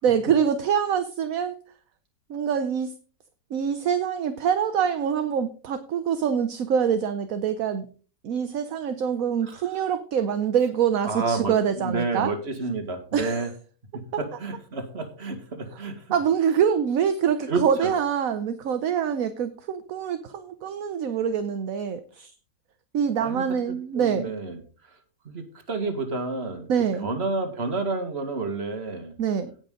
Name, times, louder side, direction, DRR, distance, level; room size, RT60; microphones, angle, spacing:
voice 1, 0.0-1.6 2.3-2.9 3.5-7.9 8.2-12.3 13.1-13.5 15.7-15.8 16.1-22.3 22.9-24.3 26.7-27.1 29.2-29.5, right 8 dB, 60° right, 10 dB, 1.1 m, -25 dB
voice 2, 11.1-13.5 13.9-16.0 17.5-17.9 23.2-23.4 24.0-24.6 25.3-26.7 27.0-29.1, right 3 dB, 35° right, 7 dB, 1.9 m, -30 dB
17.5 x 6.2 x 3.8 m, 0.39 s
omnidirectional pair, 1.9 m